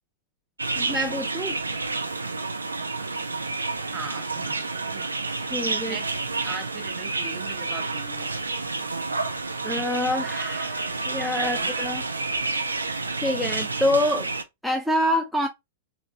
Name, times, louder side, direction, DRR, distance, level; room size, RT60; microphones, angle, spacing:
sound 1, 0.6-14.4, right 3 dB, 80° right, 0.3 m, -29 dB
voice 1, 0.8-1.6 5.3-6.0 9.6-12.0 12.7-14.3 14.6-15.5, left 1 dB, ahead, 0.3 m, -26 dB
voice 2, 3.9-5.0 5.9-6.1 6.4-8.3 11.3-11.7, right 5 dB, 30° right, 0.8 m, -39 dB
2.8 x 2.6 x 2.4 m
figure-of-eight pair, 100°, 0 cm